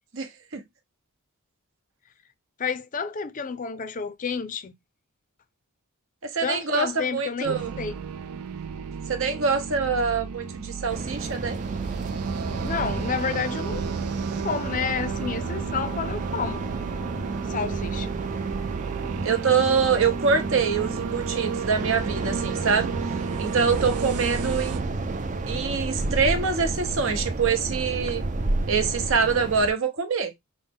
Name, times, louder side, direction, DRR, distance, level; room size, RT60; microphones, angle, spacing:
voice 1, 0.1-0.6 6.2-7.8 9.1-11.6 19.2-22.9 23.4-24.8 25.5-28.2 28.7-30.3, right 5 dB, 60° right, 0.9 m, -25 dB
voice 2, 2.6-4.7 6.4-8.0 12.6-13.8 14.4-16.6 17.5-18.1, left 6 dB, 35° left, 0.5 m, -30 dB
sound 1, 7.4-24.8, right 5 dB, 85° right, 0.5 m, -32 dB
sound 2, 10.9-29.7, right 2 dB, 35° right, 0.4 m, -32 dB
5.4 x 2.1 x 3.5 m
head